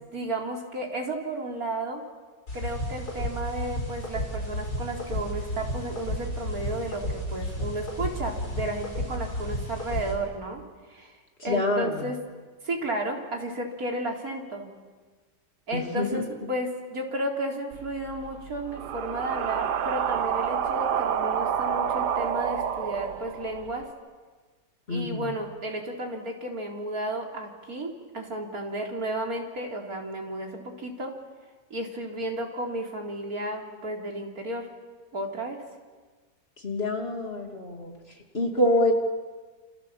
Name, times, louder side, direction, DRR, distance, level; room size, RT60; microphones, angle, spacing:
voice 1, 0.1-2.0 2.5-10.6 10.9-12.2 12.6-14.7 15.7-23.9 24.9-31.1 31.7-34.7 35.1-35.6, right 1 dB, 55° right, 1 dB, 4.2 m, -33 dB
sound 1, 2.5-10.1, equal, 60° left, 6.4 m, -32 dB
voice 2, 11.4-12.1 15.7-16.2 24.9-25.3 36.6-37.9 38.3-38.9, left 1 dB, 35° left, 2 dB, 3.1 m, -26 dB
sound 2, 17.7-23.8, right 8 dB, 70° right, 1.6 m, -29 dB
29.5 x 27.5 x 7.5 m, 1.4 s
omnidirectional pair, 1.9 m